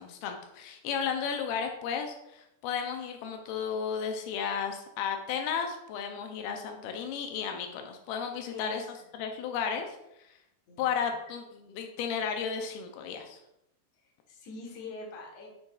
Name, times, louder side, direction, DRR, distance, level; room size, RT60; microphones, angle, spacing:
voice 1, 0.0-8.8 9.2-9.9 10.8-11.4 11.8-13.4, left 7 dB, 85° left, 4 dB, 2.5 m, -33 dB
voice 2, 8.2-9.1 10.7-11.1 13.9-15.5, left 2 dB, 60° left, -1 dB, 2.1 m, -45 dB
7.8 x 5.6 x 2.3 m, 0.83 s
omnidirectional pair, 4.3 m